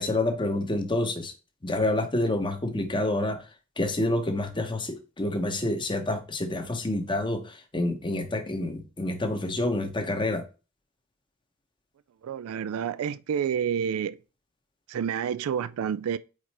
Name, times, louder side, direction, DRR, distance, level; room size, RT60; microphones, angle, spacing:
voice 1, 0.0-1.3 1.6-3.5 3.8-10.4, left 2 dB, 25° left, 1.0 m, -28 dB
voice 2, 12.2-14.2 14.9-16.2, right 8 dB, 85° right, 0.3 m, -29 dB
4.9 x 4.6 x 4.3 m
head